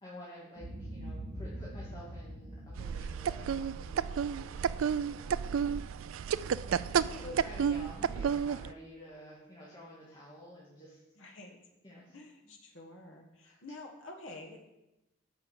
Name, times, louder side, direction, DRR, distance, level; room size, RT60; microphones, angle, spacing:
voice 1, 0.0-5.9 6.6-11.0 11.8-12.1 13.4-13.6, equal, 20° left, -7 dB, 2.3 m, -51 dB
Boom, 0.5-4.8, right 1 dB, 45° right, 3.1 m, -44 dB
sound 1, 2.8-8.7, right 7 dB, 70° right, 0.3 m, -32 dB
voice 2, 6.8-7.5 11.2-11.6 12.1-14.6, left 2 dB, 60° left, 2 dB, 1.5 m, -49 dB
10.5 x 5.7 x 7.1 m, 0.94 s
head